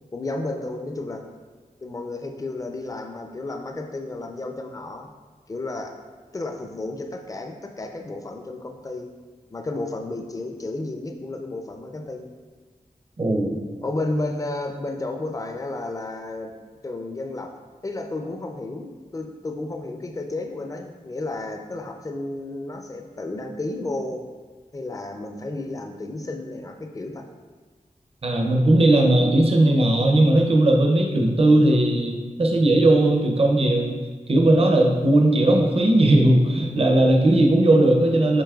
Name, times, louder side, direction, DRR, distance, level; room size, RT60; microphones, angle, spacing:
voice 1, 0.1-1.2 1.8-5.1 5.5-5.9 6.3-9.1 9.5-12.3 13.8-16.5 16.8-17.5 17.8-24.2 24.7-27.2, left 2 dB, 25° left, 3 dB, 0.4 m, -32 dB
voice 2, 13.2-13.5 28.2-34.0 34.3-38.4, right 1 dB, 45° right, 1 dB, 0.5 m, -18 dB
6.9 x 3.0 x 2.3 m, 1.4 s
wide cardioid pair, 90°, 14 cm